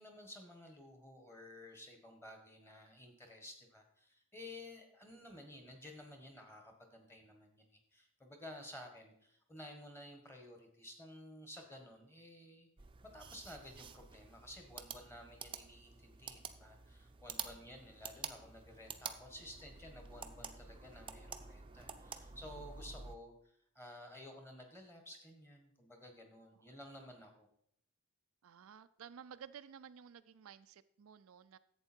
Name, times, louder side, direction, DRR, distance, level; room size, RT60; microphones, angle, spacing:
voice 1, 0.0-12.7 13.1-23.3 23.7-27.5, left 1 dB, 10° left, 4 dB, 1.6 m, -53 dB
sound 1, 12.8-23.1, right 6 dB, 25° right, 0.6 m, -49 dB
voice 2, 28.4-31.6, right 7 dB, 65° right, 12 dB, 0.4 m, -54 dB
11.5 x 8.1 x 4.5 m, 0.70 s
head